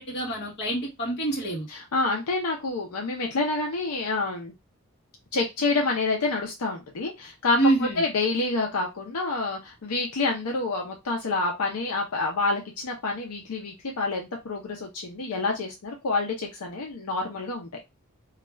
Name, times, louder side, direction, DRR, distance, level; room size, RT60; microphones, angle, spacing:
voice 1, 0.0-1.7 7.6-8.0, right 2 dB, 50° left, -1 dB, 1.1 m, -26 dB
voice 2, 1.7-4.5 5.3-17.7, left 3 dB, 85° left, 1 dB, 0.6 m, -28 dB
2.4 x 2.2 x 3.2 m, 0.23 s
head